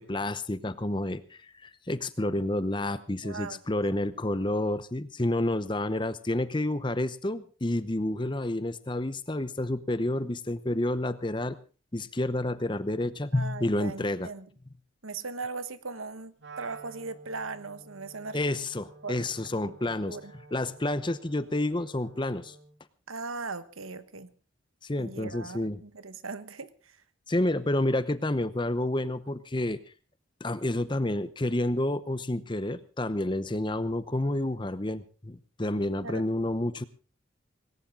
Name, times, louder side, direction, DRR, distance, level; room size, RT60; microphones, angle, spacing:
voice 1, 0.0-11.6 11.9-14.3 18.3-20.2 20.5-22.5 24.8-25.8 27.3-29.8 30.4-36.9, left 1 dB, 25° left, 14 dB, 0.8 m, -29 dB
voice 2, 3.2-4.0 13.3-14.5 15.0-18.4 19.0-19.6 20.1-20.3 23.1-24.3 25.0-27.0 36.0-36.3, right 4 dB, 90° right, 13 dB, 1.3 m, -39 dB
Wind instrument woodwind instrument, 16.4-22.8, right 4 dB, 60° right, 2.7 m, -50 dB
19.0 x 18.0 x 3.8 m, 0.35 s
head